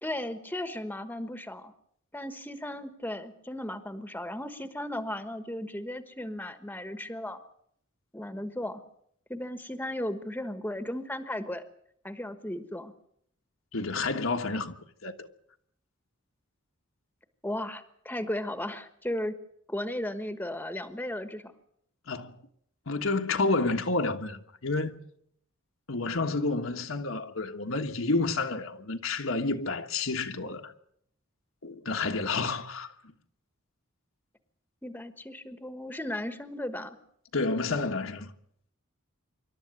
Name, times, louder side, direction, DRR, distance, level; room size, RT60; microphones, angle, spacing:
voice 1, 0.0-1.7 2.1-7.4 8.1-8.8 9.3-11.6 12.0-12.9 17.4-19.4 19.7-21.5 34.8-37.0, left 1 dB, 10° left, 1.3 m, -35 dB
voice 2, 13.7-14.7 15.0-15.3 22.1-22.3 22.9-25.0 25.9-30.7 31.6-32.9 37.3-38.3, left 3 dB, 70° left, 1.5 m, -30 dB
26.0 x 12.5 x 9.5 m
head